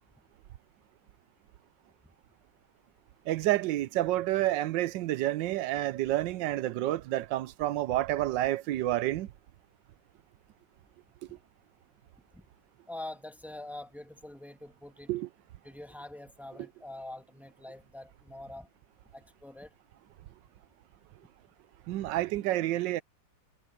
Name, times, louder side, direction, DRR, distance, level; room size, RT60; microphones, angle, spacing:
voice 1, 3.3-9.3 15.1-15.3 21.9-23.0, right 15 dB, 75° right, 1.2 m, -29 dB
voice 2, 12.9-15.1 15.6-18.7 19.1-19.7, left 1 dB, ahead, 1.1 m, -44 dB
omnidirectional pair, 2.2 m